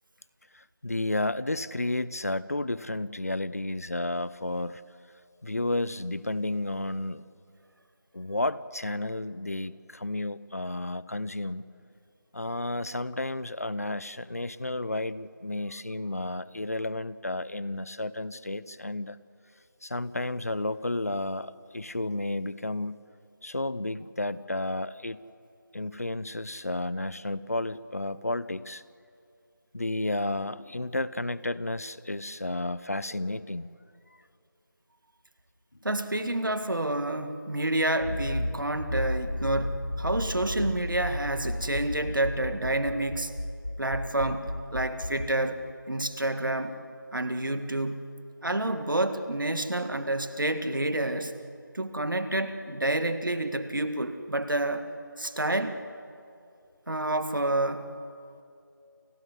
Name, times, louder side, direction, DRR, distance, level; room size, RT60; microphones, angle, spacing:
voice 1, 0.5-4.8 5.4-7.2 8.1-11.6 12.3-19.2 19.8-23.0 23.4-25.2 25.7-28.8 29.7-33.7, left 2 dB, 45° left, 16 dB, 0.6 m, -32 dB
voice 2, 35.8-43.3 43.8-45.6 45.9-46.8 47.1-48.1 48.4-51.4 51.7-54.9 55.2-55.8 56.9-57.9, right 1 dB, 70° right, 9 dB, 2.0 m, -29 dB
Accelerating revving vroom, 38.0-45.3, left 1 dB, 85° left, 1.9 m, -33 dB
29.5 x 14.5 x 9.7 m, 2.5 s
figure-of-eight pair, 175°, 11 cm